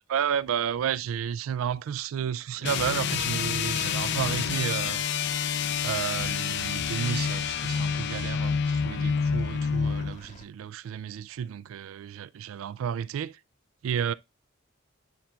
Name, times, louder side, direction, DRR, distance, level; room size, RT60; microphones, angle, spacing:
voice 1, 0.1-5.0 5.8-13.4 13.8-14.1, right 8 dB, 85° right, 0.3 m, -32 dB
sound 1, 2.6-10.2, left 6 dB, 60° left, 0.5 m, -28 dB
Aircraft, 4.1-10.4, left 2 dB, 35° left, 1.0 m, -50 dB
10.0 x 5.6 x 2.3 m
head